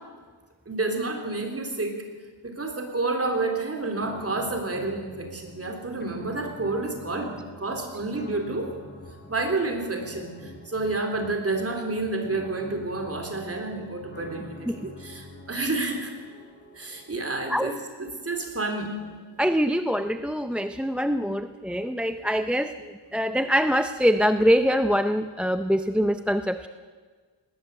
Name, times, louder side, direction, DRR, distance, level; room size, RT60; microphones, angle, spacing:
voice 1, 0.7-2.0 2.4-8.7 9.3-16.2 16.7-19.0, right 3 dB, 30° right, 3 dB, 3.6 m, -29 dB
sound 1, 4.0-20.0, left 1 dB, 20° left, 3.9 m, -47 dB
voice 2, 19.4-22.7 23.1-26.7, equal, ahead, 9 dB, 0.5 m, -24 dB
19.5 x 18.5 x 8.2 m, 1.5 s
wide cardioid pair, 150°, 49 cm